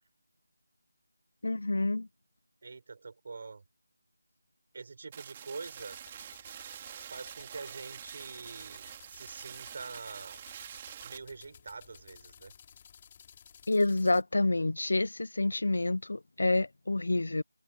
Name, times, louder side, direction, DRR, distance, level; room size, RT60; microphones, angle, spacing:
voice 1, 1.4-2.1 13.7-17.4, left 2 dB, 65° left, 0.7 m, -28 dB
voice 2, 2.6-3.6 4.7-6.0 7.1-10.5 11.0-12.5, right 4 dB, 45° right, 5.9 m, -45 dB
sound 1, 5.1-11.2, right 9 dB, 20° right, 3.2 m, -46 dB
sound 2, 5.6-14.2, left 8 dB, 25° left, 3.3 m, -57 dB
figure-of-eight pair, 165°, 0 cm